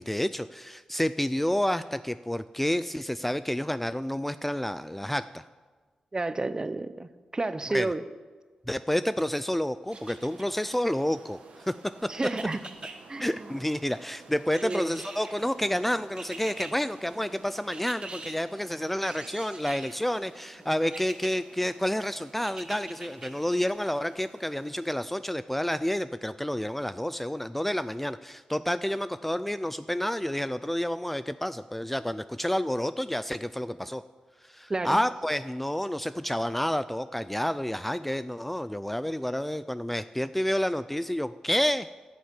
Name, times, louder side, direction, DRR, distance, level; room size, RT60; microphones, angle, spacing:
voice 1, 0.0-5.4 7.7-7.9 8.7-11.7 13.2-34.0 34.4-41.9, left 1 dB, 5° left, 13 dB, 0.4 m, -29 dB
voice 2, 6.1-8.0 12.1-12.6 13.1-13.5 14.6-15.0 34.7-35.0, right 2 dB, 30° right, 13 dB, 0.7 m, -31 dB
sound 1, 9.9-10.7 12.2-12.9 14.5-15.5 16.2-16.7 17.7-18.4 19.0-20.0 20.9-21.3 22.4-23.3 23.8-23.9, right 3 dB, 50° right, 1.6 m, -43 dB
sound 2, 9.9-24.9, right 4 dB, 85° right, 1.4 m, -52 dB
11.5 x 6.4 x 8.3 m, 1.4 s
cardioid pair, 60°, 2 cm